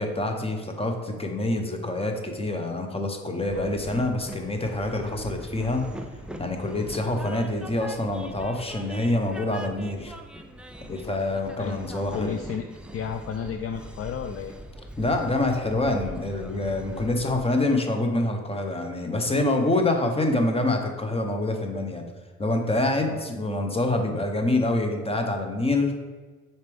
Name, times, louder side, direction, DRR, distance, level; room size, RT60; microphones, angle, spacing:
voice 1, 0.0-5.8 6.4-10.1 10.9-12.4 15.0-22.0 22.4-26.0, left 2 dB, 20° left, 4 dB, 0.9 m, -26 dB
Train, 3.5-17.4, right 1 dB, 5° right, 0.5 m, -41 dB
voice 2, 11.0-11.8 12.1-12.7 12.9-14.5 23.0-23.2, left 7 dB, 50° left, 7 dB, 0.4 m, -33 dB
6.6 x 4.4 x 3.5 m, 1.4 s
cardioid pair, 90°, 30 cm